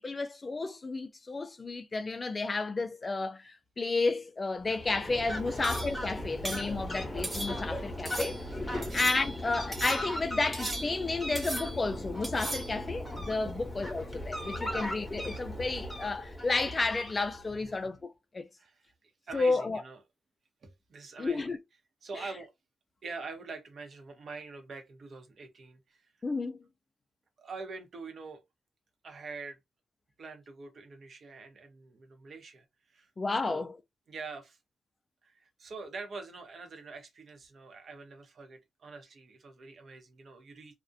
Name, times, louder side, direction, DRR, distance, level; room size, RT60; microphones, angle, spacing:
voice 1, 0.0-8.4 8.9-18.5 19.3-19.8 21.2-21.6 22.1-22.3 26.2-26.6 33.2-33.7, left 3 dB, 30° left, 0.3 m, -32 dB
Fowl, 4.6-17.6, left 1 dB, 10° left, 0.8 m, -38 dB
sound 1, 5.6-6.0 6.4-6.7 7.2-7.8 8.1-8.4 8.8-9.4 9.7-10.2 10.5-11.1 11.4-11.9 12.2-12.8, right 1 dB, 20° right, 0.6 m, -38 dB
voice 2, 14.5-14.8 17.5-17.7 18.6-18.9 19.3-20.0 20.6-21.5 22.0-22.5 23.0-26.1 27.4-28.4 29.0-29.6 30.2-33.1 33.5-33.7 34.1-34.6 35.2-40.8, right 4 dB, 55° right, 0.7 m, -45 dB
2.4 x 2.0 x 2.5 m
cardioid pair, 115°, 0 cm